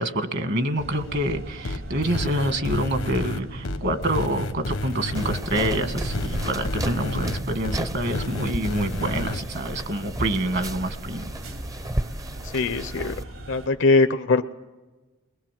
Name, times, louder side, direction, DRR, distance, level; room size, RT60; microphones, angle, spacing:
voice 1, 0.0-11.3, right 1 dB, 55° right, 8 dB, 1.6 m, -27 dB
sound 1, 0.8-13.7, right 1 dB, 75° right, 4.0 m, -38 dB
sound 2, 1.6-9.4, left 2 dB, 80° left, 1.1 m, -31 dB
sound 3, 5.2-13.2, right 1 dB, 15° right, 0.6 m, -33 dB
voice 2, 12.4-13.1 13.5-14.4, left 3 dB, 60° left, 8 dB, 0.6 m, -21 dB
22.0 x 21.0 x 7.5 m, 1.2 s
head